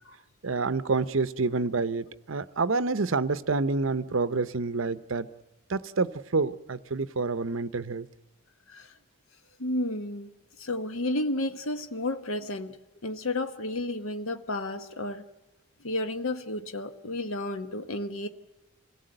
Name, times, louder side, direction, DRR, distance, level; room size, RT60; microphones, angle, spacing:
voice 1, 0.4-5.3 5.7-8.1, right 3 dB, 65° right, 0.7 m, -28 dB
voice 2, 9.6-10.3 10.6-12.8 13.0-15.2 15.8-18.3, left 2 dB, 75° left, 1.0 m, -32 dB
26.5 x 17.0 x 7.8 m
head